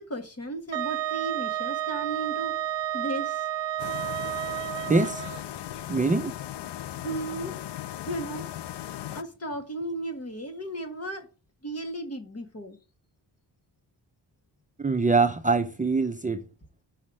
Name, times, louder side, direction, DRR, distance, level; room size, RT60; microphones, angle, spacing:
voice 1, 0.0-2.6 2.9-3.5 7.0-7.6 8.1-8.5 9.1-11.3 11.6-12.8, right 1 dB, 35° left, 1.8 m, -35 dB
Wind instrument woodwind instrument, 0.7-5.4, right 13 dB, 90° right, 0.5 m, -31 dB
sound 1, 3.8-9.2, left 12 dB, 70° left, 0.5 m, -37 dB
voice 2, 4.9-5.2 5.9-6.3 14.8-16.4, right 3 dB, 20° right, 0.6 m, -23 dB
5.7 x 5.5 x 6.3 m
wide cardioid pair, 95°, 42 cm